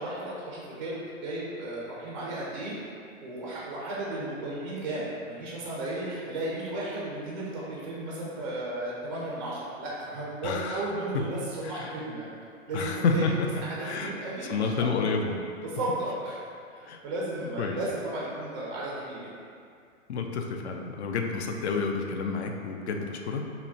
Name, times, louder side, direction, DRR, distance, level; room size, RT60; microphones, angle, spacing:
voice 1, 0.0-2.7 3.2-12.3 12.7-13.3 13.5-14.9 15.6-16.4 16.7-19.3, right 1 dB, 25° right, -6 dB, 0.4 m, -34 dB
voice 2, 10.4-10.9 11.6-11.9 12.7-13.4 13.8-14.1 14.5-15.4 16.8-17.0 17.6-17.8 20.1-23.4, left 4 dB, 55° left, 3 dB, 0.5 m, -29 dB
5.7 x 2.1 x 2.6 m, 2.3 s
hypercardioid pair, 150°, 41 cm